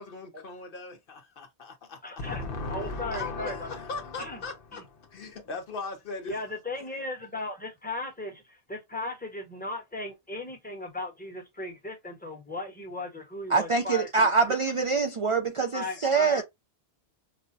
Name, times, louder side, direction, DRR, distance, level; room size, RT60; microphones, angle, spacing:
voice 1, 0.0-6.4, left 3 dB, 60° left, 0.8 m, -37 dB
voice 2, 2.0-3.7 4.2-4.4 4.7-4.8 6.3-14.5 15.7-16.4, left 2 dB, 10° left, 0.9 m, -37 dB
voice 3, 13.5-16.4, right 4 dB, 55° right, 0.3 m, -24 dB
5.0 x 2.1 x 2.6 m
omnidirectional pair, 1.1 m